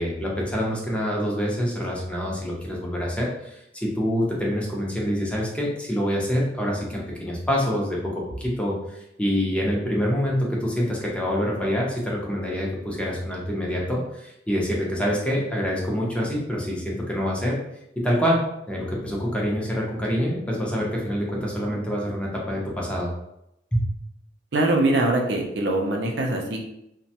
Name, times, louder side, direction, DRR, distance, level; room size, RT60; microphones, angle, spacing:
voice 1, 0.0-17.6 18.0-18.4 18.7-23.1 23.7-23.8, equal, 5° left, -3 dB, 0.6 m, -26 dB
voice 2, 24.5-26.6, right 2 dB, 70° right, 1 dB, 0.5 m, -22 dB
3.0 x 2.1 x 2.8 m, 0.82 s
head